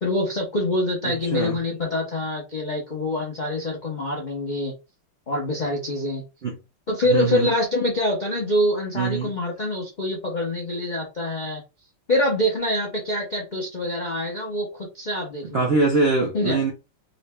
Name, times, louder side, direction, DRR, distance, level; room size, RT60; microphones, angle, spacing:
voice 1, 0.0-4.7 5.3-6.2 6.9-11.6 12.1-14.7 14.9-15.7 16.3-16.6, left 1 dB, 50° left, 0.5 m, -25 dB
voice 2, 1.0-1.6 6.4-6.6 7.1-7.5 9.0-9.3 15.4-16.7, right 3 dB, 60° right, 0.6 m, -23 dB
4.0 x 3.1 x 2.2 m
omnidirectional pair, 2.3 m